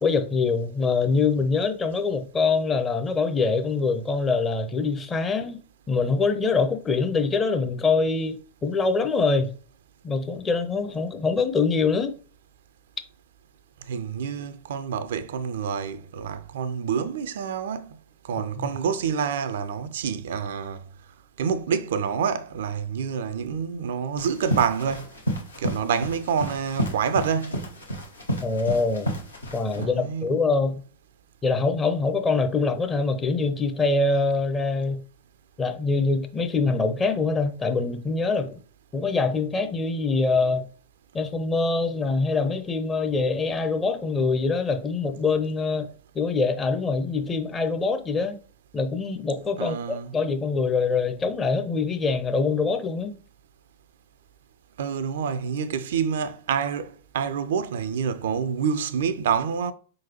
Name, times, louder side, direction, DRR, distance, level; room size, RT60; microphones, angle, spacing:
voice 1, 0.0-5.6 5.9-9.5 10.0-12.2 18.4-18.7 28.4-29.1 29.5-30.7 31.4-35.0 35.6-38.6 38.9-40.7 41.1-45.9 46.1-48.4 48.7-53.1, left 4 dB, 20° left, 0.6 m, -24 dB
voice 2, 13.8-18.0 18.2-20.8 21.4-25.1 25.6-27.7 29.7-30.3 49.6-50.1 54.8-59.7, right 7 dB, 60° right, 0.3 m, -27 dB
sound 1, 24.2-29.8, right 1 dB, 80° left, 1.0 m, -31 dB
4.6 x 3.8 x 2.9 m
figure-of-eight pair, 90°, 0 cm